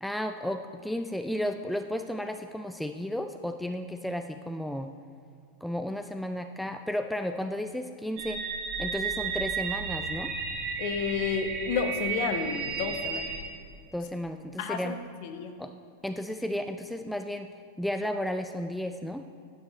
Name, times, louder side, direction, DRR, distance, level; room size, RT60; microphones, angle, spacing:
voice 1, 0.0-4.9 5.6-8.4 8.8-10.3 13.9-15.0 15.6-15.7 16.0-17.5 17.8-19.2, left 1 dB, ahead, 7 dB, 0.3 m, -33 dB
sound 1, 8.2-13.4, right 5 dB, 40° right, 1.6 m, -33 dB
voice 2, 10.8-13.3 14.6-14.9 15.2-15.5, left 6 dB, 45° left, 7 dB, 0.8 m, -31 dB
10.0 x 8.0 x 4.0 m, 2.4 s
figure-of-eight pair, 90°, 0 cm